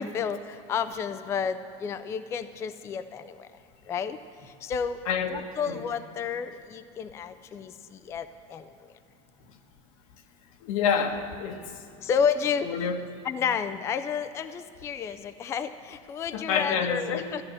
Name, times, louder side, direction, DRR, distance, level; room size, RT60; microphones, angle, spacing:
voice 1, 0.0-3.5 3.9-4.2 4.6-5.0 5.3-7.7 8.1-8.6 12.0-12.7 13.2-17.4, left 7 dB, 15° left, 11 dB, 0.3 m, -31 dB
voice 2, 5.0-5.8 10.6-11.6 12.6-13.1 16.3-17.3, left 6 dB, 85° left, 5 dB, 1.4 m, -28 dB
14.5 x 10.5 x 7.6 m, 2.4 s
cardioid pair, 165°, 17 cm